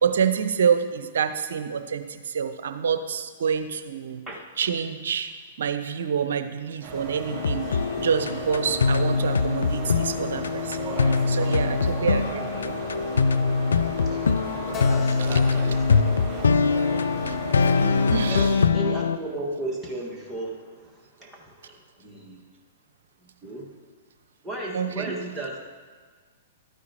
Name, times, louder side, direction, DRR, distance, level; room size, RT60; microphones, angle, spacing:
voice 1, 0.0-4.2 4.6-5.3 5.6-12.7 17.2-17.4 18.1-18.5 24.7-25.0, right 7 dB, 65° right, 10 dB, 0.6 m, -27 dB
voice 2, 4.3-4.8 13.8-17.0 17.7-22.4 23.2-23.8 24.4-25.6, right 2 dB, 5° right, -4 dB, 1.8 m, -36 dB
sound 1, 6.8-18.5, right 2 dB, 20° right, 2.1 m, -36 dB
sound 2, 7.3-19.2, left 5 dB, 75° left, 0.3 m, -23 dB
Keyboard (musical), 14.7-18.2, left 8 dB, 25° left, 0.7 m, -40 dB
12.5 x 9.5 x 3.0 m, 1.5 s
figure-of-eight pair, 110°, 0 cm